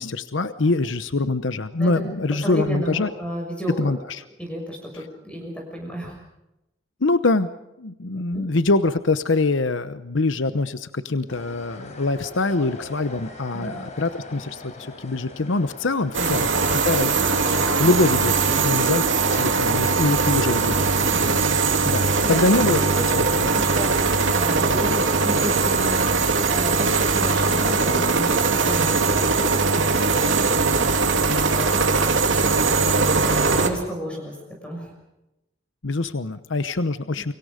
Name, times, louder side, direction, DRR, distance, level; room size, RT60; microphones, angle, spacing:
voice 1, 0.0-3.1 3.8-4.2 7.0-7.5 7.8-18.3 18.6-19.0 19.3-21.3 21.9-22.8 23.1-23.5 35.8-37.3, left 2 dB, 80° left, 12 dB, 0.9 m, -24 dB
voice 2, 2.4-3.9 4.4-6.1 8.3-8.4 13.5-13.8 16.1-16.5 17.7-18.0 21.1-21.6 21.9-23.1 23.4-26.1 26.5-32.0 32.6-32.8 33.5-34.4 34.6-34.9 37.2-37.3, equal, 5° left, 0 dB, 6.3 m, -33 dB
sound 1, 11.3-26.3, left 2 dB, 40° left, 4.1 m, -42 dB
sound 2, 16.1-33.7, right 4 dB, 80° right, 2.9 m, -20 dB
29.5 x 25.0 x 5.1 m, 0.91 s
head